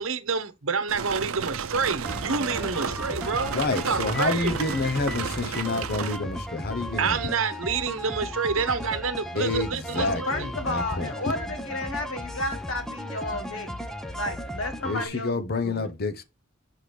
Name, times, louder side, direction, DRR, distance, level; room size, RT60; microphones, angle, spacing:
voice 1, 0.0-4.5 7.0-10.5, right 5 dB, 70° right, 1.0 m, -28 dB
sound 1, 0.9-6.2, right 7 dB, 85° right, 0.6 m, -33 dB
sound 2, 2.0-15.1, equal, ahead, 0.6 m, -36 dB
voice 2, 3.4-7.2 9.3-11.1 14.8-16.2, left 3 dB, 50° left, 0.9 m, -28 dB
voice 3, 9.9-13.7 14.1-15.4 15.6-15.9, left 2 dB, 70° left, 1.5 m, -32 dB
6.6 x 5.9 x 3.3 m
head